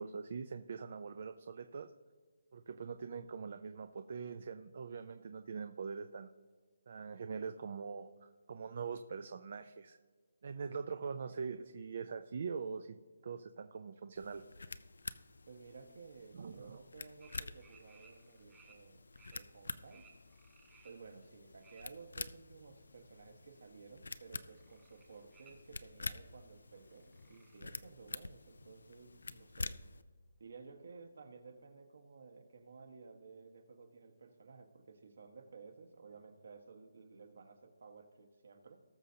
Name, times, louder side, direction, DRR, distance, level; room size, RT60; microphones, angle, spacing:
voice 1, 0.0-1.9 2.5-6.3 6.9-10.0 10.4-13.0 13.2-14.4 16.3-16.8, right 5 dB, 45° right, 9 dB, 0.4 m, -43 dB
sound 1, 14.1-30.0, left 3 dB, 90° left, 0.5 m, -48 dB
voice 2, 15.5-19.0 19.3-20.0 20.8-29.8 30.4-38.8, right 4 dB, 60° right, 6 dB, 1.4 m, -55 dB
sound 2, 17.2-18.8 19.1-19.4 19.9-21.8 22.2-23.3 23.6-24.0 24.3-25.5 26.0-26.1 26.4-26.5 26.7-28.1 28.3-28.4 28.6-28.7 29.4-29.5 29.9-30.0 30.4-30.5, right 5 dB, 10° right, 1.1 m, -64 dB
19.0 x 6.4 x 2.8 m, 1.5 s
hypercardioid pair, 175°, 0 cm